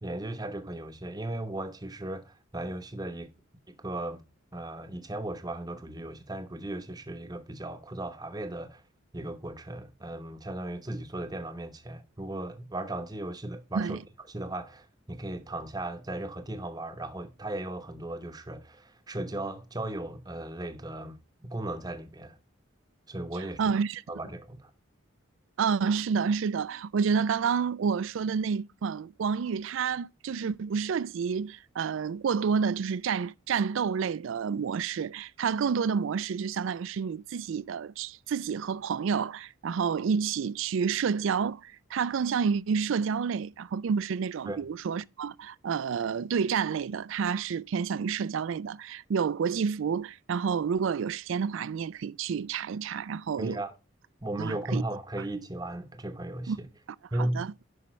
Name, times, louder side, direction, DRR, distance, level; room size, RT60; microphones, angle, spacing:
voice 1, 0.0-3.3 3.7-4.2 4.5-8.8 9.1-14.0 14.3-22.4 23.1-23.7 24.1-24.7 44.4-44.6 53.4-53.7 54.2-56.7 57.1-57.5, right 1 dB, 20° right, 0.9 m, -36 dB
voice 2, 23.6-24.0 25.6-53.6 54.4-54.8 56.5-56.6 57.3-57.5, right 6 dB, 65° right, 0.3 m, -29 dB
10.0 x 5.7 x 3.1 m
head